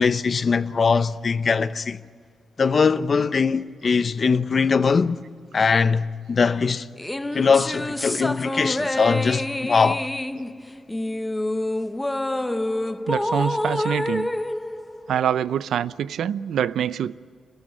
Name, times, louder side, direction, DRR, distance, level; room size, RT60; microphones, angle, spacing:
voice 1, 0.0-2.0 2.6-5.2 5.5-6.9 7.3-10.0, left 5 dB, 40° left, 0.8 m, -21 dB
sound 1, 7.0-15.6, left 1 dB, 10° left, 0.8 m, -27 dB
voice 2, 13.1-14.3 15.1-17.1, right 9 dB, 80° right, 0.6 m, -25 dB
29.0 x 13.5 x 9.9 m
cardioid pair, 115°, 0 cm